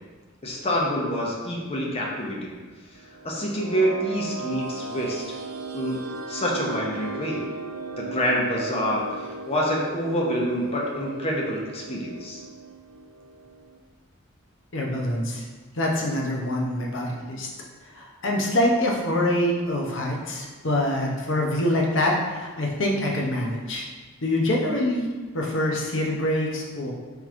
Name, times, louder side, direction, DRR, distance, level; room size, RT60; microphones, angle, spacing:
voice 1, 0.4-2.5 3.2-5.4 5.7-6.0 6.3-7.4 8.0-12.4, equal, 30° left, -3 dB, 0.7 m, -27 dB
sound 1, 2.9-13.8, right 3 dB, 70° right, 0.4 m, -37 dB
voice 2, 14.7-15.4 15.7-17.5 17.9-23.9 24.2-26.9, left 1 dB, 65° left, -1 dB, 0.7 m, -25 dB
3.7 x 3.0 x 3.6 m, 1.4 s
head